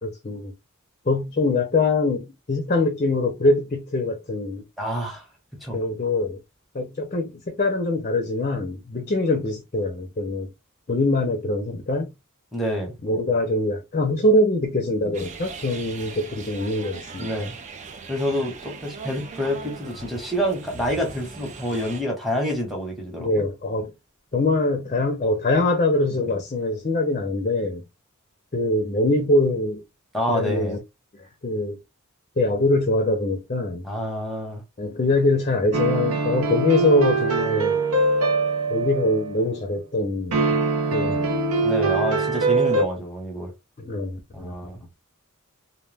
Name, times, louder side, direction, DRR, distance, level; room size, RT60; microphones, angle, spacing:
voice 1, 0.0-0.5 1.1-4.6 5.7-6.4 6.7-10.5 10.9-12.1 13.0-17.3 23.2-23.9 24.3-27.8 28.5-29.8 30.3-30.8 31.4-31.8 32.4-33.8 34.8-37.8 38.7-40.6 40.9-41.4 43.8-44.5, left 2 dB, 35° left, 0.5 m, -23 dB
voice 2, 4.8-5.2 5.6-5.8 12.5-12.9 17.2-17.6 18.1-23.5 30.1-30.8 33.8-34.6 41.6-43.5 44.3-44.8, equal, ahead, 0.9 m, -27 dB
sound 1, 15.1-22.0, right 5 dB, 35° right, 0.3 m, -39 dB
sound 2, 35.7-39.4 40.3-42.9, right 3 dB, 90° right, 0.5 m, -22 dB
2.2 x 2.1 x 3.3 m
head